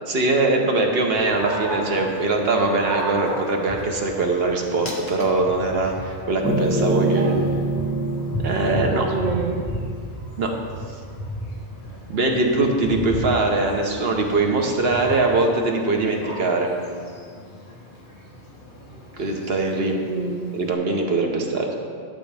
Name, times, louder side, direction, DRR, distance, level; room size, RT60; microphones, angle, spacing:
voice 1, 0.1-7.3 8.4-9.1 10.4-10.6 12.1-16.7 19.2-20.0 20.5-21.7, right 2 dB, 65° right, 2 dB, 1.2 m, -22 dB
Dog, 1.1-20.7, equal, 45° left, 1.3 m, -34 dB
sound 1, 6.4-10.0, right 2 dB, 10° right, 0.4 m, -25 dB
voice 2, 6.9-7.5 8.9-10.0 19.8-20.5, right 4 dB, 50° right, 2 dB, 0.8 m, -29 dB
11.5 x 7.5 x 3.4 m, 2.1 s
omnidirectional pair, 1.1 m